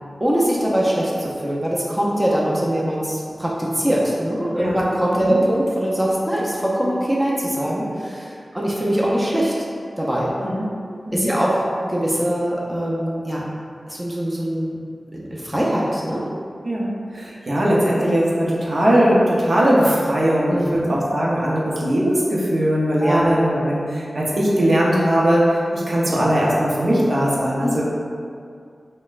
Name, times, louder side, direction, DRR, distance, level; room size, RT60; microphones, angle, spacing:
voice 1, 0.2-9.5 10.0-10.3 11.1-13.5 13.9-14.8 15.1-16.2 20.5-21.0 23.0-23.3 27.6-27.8, equal, 10° right, -5 dB, 0.5 m, -22 dB
voice 2, 16.6-25.4 25.7-27.8, equal, 55° right, -5 dB, 0.6 m, -19 dB
5.2 x 2.1 x 2.4 m, 2.3 s
wide cardioid pair, 85°, 0 cm